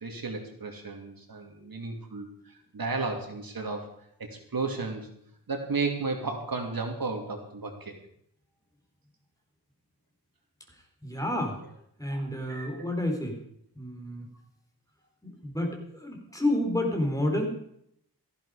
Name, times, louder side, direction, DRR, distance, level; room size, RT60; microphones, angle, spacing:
voice 1, 0.0-3.9 4.2-5.1 5.5-7.9 12.1-12.8, right 3 dB, 60° right, 3 dB, 2.9 m, -34 dB
voice 2, 11.0-11.6 12.0-13.4 13.8-14.3 15.2-17.5, left 1 dB, 10° left, 2 dB, 4.1 m, -29 dB
18.0 x 14.5 x 5.0 m, 0.71 s
wide cardioid pair, 135°, 41 cm